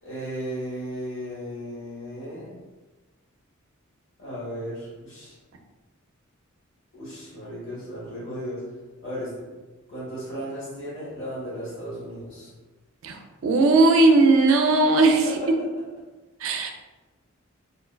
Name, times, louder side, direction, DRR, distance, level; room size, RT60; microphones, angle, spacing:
voice 1, 0.0-2.6 4.2-5.4 6.9-8.6 9.0-9.5 9.9-12.5 15.2-15.7, equal, 65° left, -8 dB, 1.3 m, -35 dB
voice 2, 13.4-15.2 16.4-16.7, right 3 dB, 65° right, 4 dB, 0.4 m, -17 dB
3.8 x 2.2 x 2.2 m, 1.2 s
head